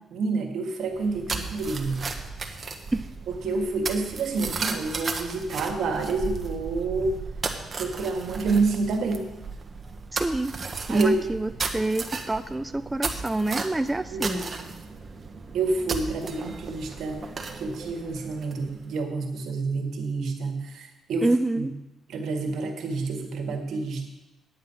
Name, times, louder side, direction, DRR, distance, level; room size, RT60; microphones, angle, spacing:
voice 1, 0.1-2.1 3.3-7.1 7.8-9.3 10.9-11.2 14.1-14.7 15.5-17.2 17.5-21.3 21.5-21.7 22.1-24.1, right 3 dB, 70° right, 4 dB, 1.7 m, -28 dB
sound 1, 0.9-18.8, right 4 dB, 35° right, 1.2 m, -35 dB
voice 2, 10.1-10.5 10.9-14.4 21.2-21.7, right 2 dB, 10° right, 9 dB, 0.4 m, -26 dB
9.0 x 8.6 x 5.6 m, 1.0 s
cardioid pair, 90°, 0 cm